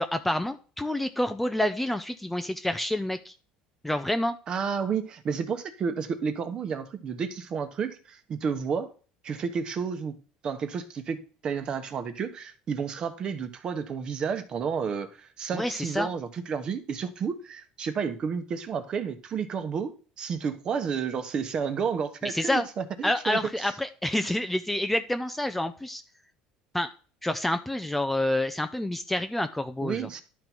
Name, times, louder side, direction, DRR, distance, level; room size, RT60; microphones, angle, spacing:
voice 1, 0.0-3.3 3.8-4.4 15.5-16.1 22.2-22.7 23.0-26.0 26.7-26.9 27.2-30.1, left 1 dB, 5° left, 0.5 m, -28 dB
voice 2, 4.5-8.9 9.2-10.1 10.4-23.4 29.8-30.2, right 6 dB, 35° right, 1.1 m, -31 dB
11.5 x 4.0 x 4.5 m
cardioid pair, 125°, 2 cm